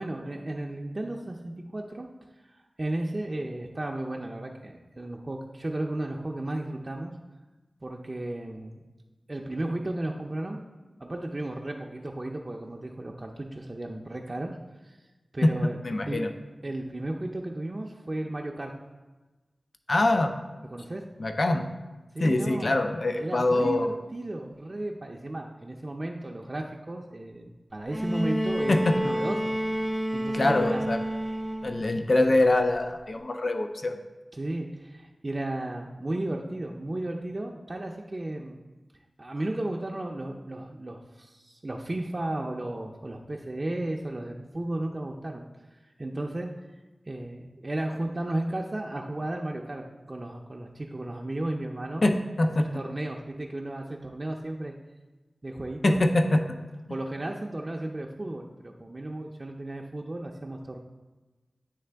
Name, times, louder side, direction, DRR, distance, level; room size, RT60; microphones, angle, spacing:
voice 1, 0.0-2.1 2.5-7.1 7.8-8.8 9.3-10.6 11.0-14.6 14.8-15.0 15.3-15.8 16.1-16.2 16.6-18.7 20.7-21.0 22.1-22.8 23.1-29.8 30.1-30.9 34.3-38.6 39.2-45.5 45.7-46.5 47.1-52.2 52.6-54.7 55.4-56.1 56.9-60.8, right 1 dB, 40° right, 0 dB, 0.5 m, -34 dB
voice 2, 15.4-16.3 19.9-20.3 21.2-21.6 22.2-23.9 28.7-29.0 30.3-31.0 31.6-34.0 52.0-52.7 55.8-56.4, left 2 dB, 60° left, 5 dB, 0.4 m, -24 dB
Bowed string instrument, 27.9-31.9 33.2-33.3, equal, 5° left, 0.7 m, -29 dB
9.6 x 3.3 x 3.3 m, 1.2 s
wide cardioid pair, 55°, 0 cm